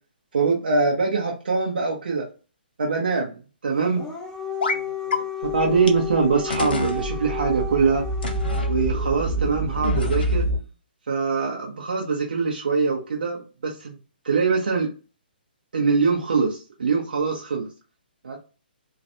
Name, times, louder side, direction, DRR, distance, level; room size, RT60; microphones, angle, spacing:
voice 1, 0.3-2.3 2.8-4.0 4.7-4.8 5.1-5.2 5.5-8.0 8.7-10.4 11.1-13.9 14.2-14.9 15.7-17.7 18.2-18.4, right 4 dB, 65° right, -2 dB, 0.7 m, -23 dB
Dog, 3.8-9.0, left 7 dB, 10° left, 0.4 m, -32 dB
sound 1, 4.6-4.8 5.1-5.2 5.9-6.0 6.5-7.0 8.2-8.7 9.8-10.6, left 3 dB, 70° left, 0.6 m, -27 dB
sound 2, 5.4-10.6, right 1 dB, 5° right, 0.8 m, -28 dB
2.4 x 2.1 x 2.7 m, 0.33 s
figure-of-eight pair, 130°, 6 cm